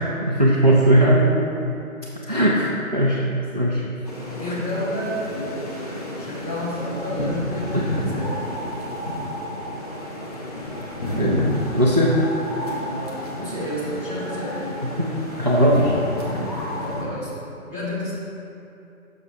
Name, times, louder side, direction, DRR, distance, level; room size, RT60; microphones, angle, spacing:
voice 1, 0.2-1.5 2.3-3.2 3.5-3.8 7.7-7.9 11.2-12.2 15.0-15.1 15.4-15.9 16.3-16.4, right 1 dB, 35° right, -4 dB, 0.4 m, -19 dB
sound 1, 4.0-17.0, left 1 dB, 25° left, 0.8 m, -30 dB
voice 2, 4.4-8.3 12.8-14.7 16.7-18.1, equal, 10° left, -11 dB, 1.2 m, -31 dB
6.7 x 6.0 x 3.8 m, 2.7 s
figure-of-eight pair, 145°, 43 cm